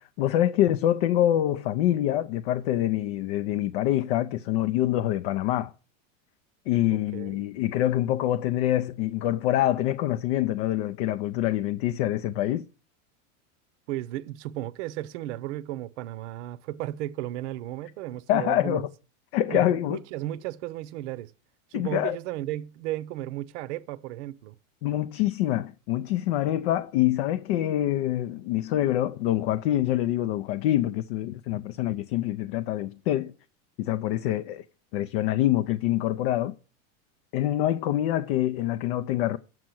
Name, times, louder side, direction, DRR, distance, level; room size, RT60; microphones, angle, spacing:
voice 1, 0.0-5.7 6.7-12.7 18.3-18.9 19.3-20.0 21.7-22.2 24.8-33.3 33.8-34.6 34.9-36.5 37.3-39.4, left 13 dB, 50° left, 0.5 m, -25 dB
voice 2, 6.9-7.4 13.9-18.9 19.5-21.3 21.7-24.5, right 15 dB, 60° right, 0.7 m, -34 dB
7.5 x 5.7 x 7.6 m
supercardioid pair, 155°, 40 cm